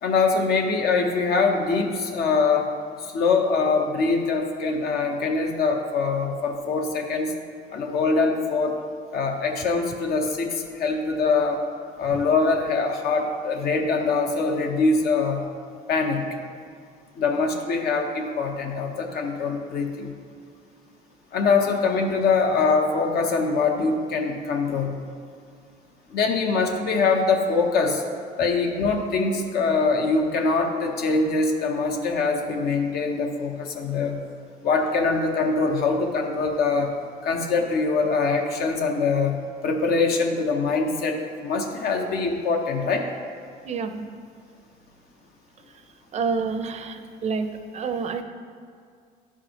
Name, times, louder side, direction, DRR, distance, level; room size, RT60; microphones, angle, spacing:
voice 1, 0.0-2.7 3.0-7.3 7.7-8.8 9.1-11.6 12.0-15.4 15.9-16.2 17.2-20.1 21.3-24.9 26.1-28.0 28.4-34.2 34.6-36.9 37.2-39.3 39.6-43.1, left 4 dB, 70° left, 3 dB, 0.9 m, -23 dB
voice 2, 43.7-44.1 46.1-47.5 47.7-48.2, right 5 dB, 40° right, 8 dB, 0.5 m, -28 dB
11.5 x 4.9 x 2.9 m, 2.2 s
cardioid pair, 110°, 17 cm